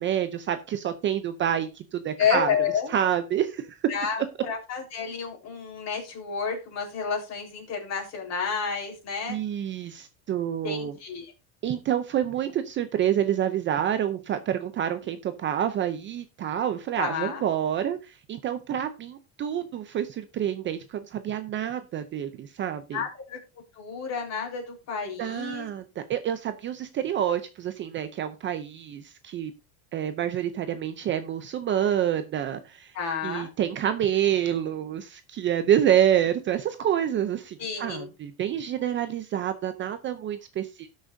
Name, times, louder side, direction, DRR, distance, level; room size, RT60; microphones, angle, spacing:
voice 1, 0.0-2.6 2.9-3.8 9.3-10.9 11.6-23.0 25.2-29.5 29.9-32.9 33.2-40.9, right 10 dB, 30° right, 10 dB, 0.6 m, -27 dB
voice 2, 2.2-2.9 3.9-9.4 10.6-11.3 17.0-17.4 22.9-23.4 23.8-25.7 32.9-33.5 37.6-38.1, left 6 dB, 40° left, 1 dB, 4.1 m, -30 dB
18.0 x 6.3 x 2.7 m, 0.29 s
cardioid pair, 150°, 41 cm